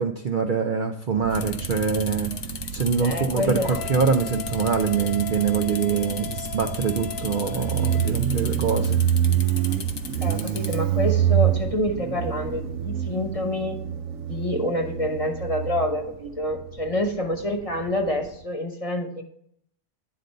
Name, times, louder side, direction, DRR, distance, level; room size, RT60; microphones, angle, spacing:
voice 1, 0.0-2.3 2.7-9.0, right 6 dB, 50° right, 4 dB, 0.6 m, -24 dB
Motorcycle, 1.1-18.4, right 10 dB, 80° right, 1.0 m, -28 dB
sound 1, 1.3-10.8, left 6 dB, 55° left, 0.7 m, -37 dB
voice 2, 3.0-3.8 10.2-13.8 14.2-19.2, left 1 dB, 30° left, 3 dB, 1.0 m, -27 dB
Wind instrument woodwind instrument, 3.6-8.1, left 15 dB, 85° left, 1.0 m, -37 dB
9.9 x 3.9 x 6.6 m, 0.67 s
omnidirectional pair, 1.4 m